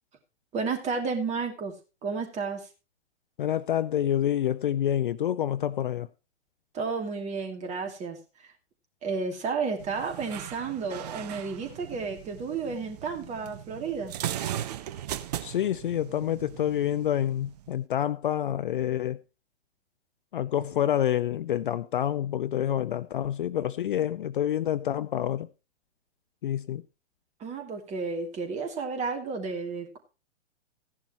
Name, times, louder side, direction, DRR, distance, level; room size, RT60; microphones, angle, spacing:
voice 1, 0.5-1.7 2.0-2.7 6.7-8.5 9.0-14.1 27.4-30.0, right 4 dB, 20° right, 2.5 m, -32 dB
voice 2, 3.4-6.1 15.4-19.2 20.3-25.5 26.4-26.8, left 11 dB, 45° left, 0.6 m, -27 dB
sound 1, 9.8-17.8, right 11 dB, 35° right, 0.7 m, -38 dB
15.5 x 11.0 x 3.0 m
figure-of-eight pair, 115°, 36 cm